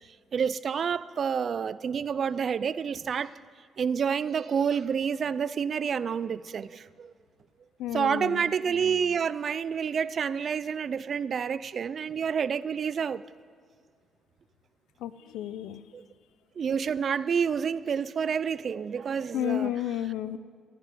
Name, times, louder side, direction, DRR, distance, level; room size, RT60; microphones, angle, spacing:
voice 1, 0.3-3.3 3.8-7.1 7.9-13.2 15.9-16.0 16.6-19.7, right 7 dB, 50° right, 0.4 m, -28 dB
voice 2, 7.8-8.5 15.0-15.8 19.3-20.4, left 12 dB, 90° left, 0.6 m, -32 dB
13.5 x 10.0 x 9.3 m
cardioid pair, 90°, 0 cm